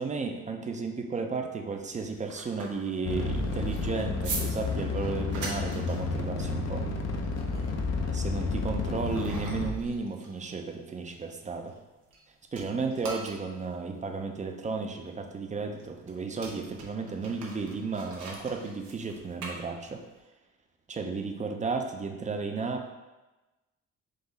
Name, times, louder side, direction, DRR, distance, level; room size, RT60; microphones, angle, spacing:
voice 1, 0.0-6.9 8.1-11.7 12.5-20.0 20.9-23.1, right 4 dB, 25° right, 4 dB, 0.4 m, -34 dB
sound 1, 1.7-12.2 12.5-20.2, right 3 dB, 90° right, 0.9 m, -43 dB
sound 2, 3.0-9.9, left 3 dB, 55° left, 0.6 m, -31 dB
3.9 x 2.6 x 4.0 m, 1.1 s
cardioid pair, 90°, 30 cm